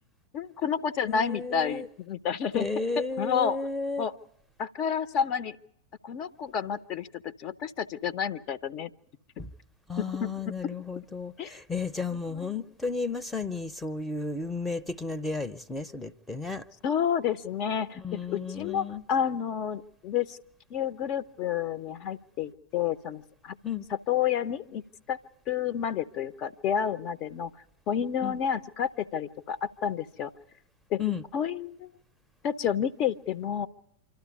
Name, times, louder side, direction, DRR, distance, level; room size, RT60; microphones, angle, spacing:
voice 1, 0.3-2.7 3.2-3.6 4.0-4.1 4.6-5.6 6.0-8.9 10.0-10.3 11.4-11.6 12.3-12.5 16.8-20.4 20.7-23.6 24.1-24.8 25.1-25.2 25.5-27.5 27.9-30.3 30.9-31.0 31.3-31.9 32.4-33.7, left 8 dB, 40° left, 14 dB, 0.8 m, -30 dB
voice 2, 1.1-1.9 2.5-4.0 9.4-9.5 9.9-16.6 18.0-19.0 23.6-23.8 28.2-28.4 31.0-31.2, left 4 dB, 5° left, 14 dB, 0.7 m, -33 dB
26.5 x 12.5 x 9.6 m, 0.76 s
figure-of-eight pair, 90°, 0 cm